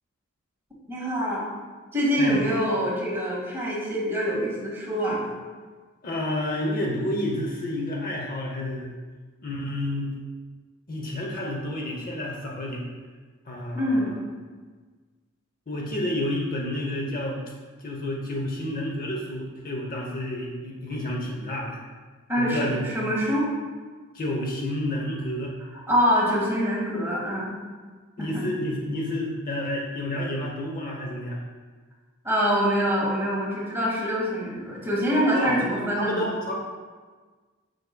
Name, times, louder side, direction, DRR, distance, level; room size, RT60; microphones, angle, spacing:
voice 1, 0.9-1.4 1.9-5.2 13.7-14.1 22.3-23.5 25.9-27.5 28.2-28.4 32.2-36.3, equal, 10° right, -6 dB, 1.8 m, -25 dB
voice 2, 6.0-8.9 9.4-10.2 10.9-12.8 13.5-14.2 15.7-17.4 17.8-21.8 22.4-22.9 24.1-25.6 28.2-31.4 35.3-35.6 36.0-36.5, left 1 dB, 40° left, -2 dB, 0.7 m, -30 dB
6.8 x 6.2 x 2.2 m, 1.4 s
head